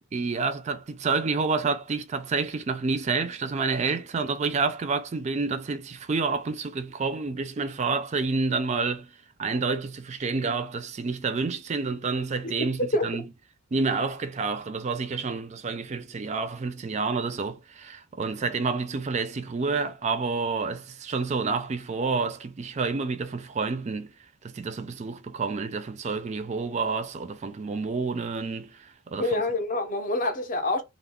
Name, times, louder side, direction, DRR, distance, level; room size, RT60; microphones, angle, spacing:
voice 1, 0.1-9.1 9.4-13.2 13.7-24.1 24.4-29.4, right 4 dB, 35° right, 0.3 m, -29 dB
voice 2, 29.2-30.8, left 2 dB, 40° left, 0.6 m, -26 dB
2.3 x 2.0 x 3.5 m
head